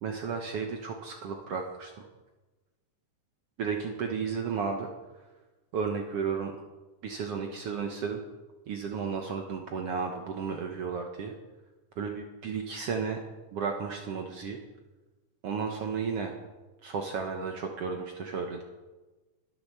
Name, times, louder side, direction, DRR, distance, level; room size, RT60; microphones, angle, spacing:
voice 1, 0.0-2.1 3.6-4.9 5.7-6.5 7.0-8.2 8.7-11.4 12.0-13.2 13.5-14.6 15.4-16.3 16.8-18.6, right 5 dB, 60° right, 3 dB, 1.8 m, -33 dB
21.0 x 7.9 x 6.7 m, 1.2 s
omnidirectional pair, 3.5 m